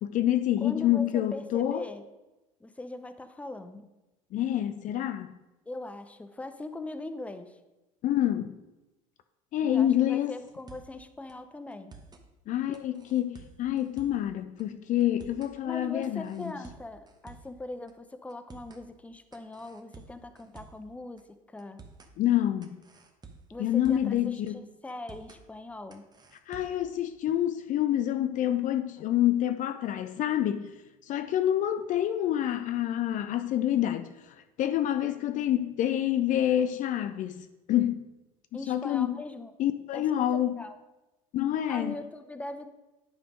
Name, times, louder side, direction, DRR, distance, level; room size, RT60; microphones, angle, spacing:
voice 1, 0.0-1.8 4.3-5.3 8.0-8.5 9.5-10.3 12.5-16.5 22.2-22.8 23.6-24.6 26.5-30.7 31.0-38.1 38.7-39.1 39.6-40.6 41.3-41.9, left 11 dB, 45° left, 0.5 m, -27 dB
voice 2, 0.6-2.0 2.6-3.9 5.7-7.6 9.7-11.9 15.6-21.8 23.5-26.1 38.5-39.5 39.9-40.8 41.7-42.7, left 2 dB, 5° left, 0.6 m, -41 dB
sound 1, 10.5-11.0 11.3-11.4 11.7-12.2 12.7-14.3 14.6-14.7 15.0-15.6 16.0-17.6 17.9-18.0 18.3-18.8 19.3-20.9 21.2-21.3 21.6-22.1 22.6-24.2 24.5-24.6 24.9-25.4 25.9-26.9, right 4 dB, 25° right, 1.0 m, -51 dB
10.0 x 3.4 x 5.2 m
hypercardioid pair, 80°, 18 cm